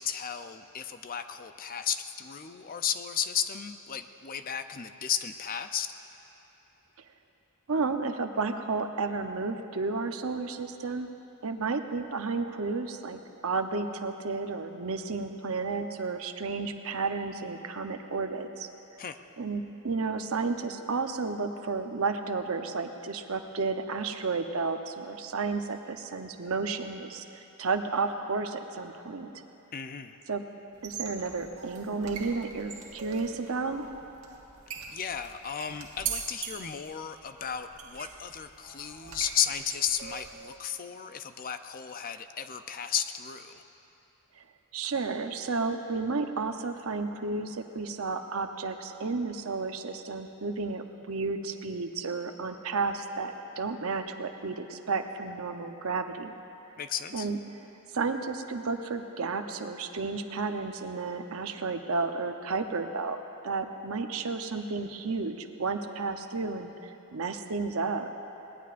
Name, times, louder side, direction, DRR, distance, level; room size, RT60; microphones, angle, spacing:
voice 1, 0.0-5.9 19.0-19.2 29.7-30.2 34.9-43.6 56.8-57.3, left 8 dB, 40° left, 9 dB, 0.5 m, -34 dB
voice 2, 7.7-11.1 11.4-18.7 19.4-29.3 30.3-30.4 30.8-33.9 44.4-44.5 44.7-56.3 57.1-57.4 57.9-68.1, right 4 dB, 70° right, 6 dB, 0.8 m, -32 dB
sound 1, 30.7-40.6, right 7 dB, 85° right, 1.5 m, -42 dB
22.0 x 19.0 x 2.5 m, 3.0 s
head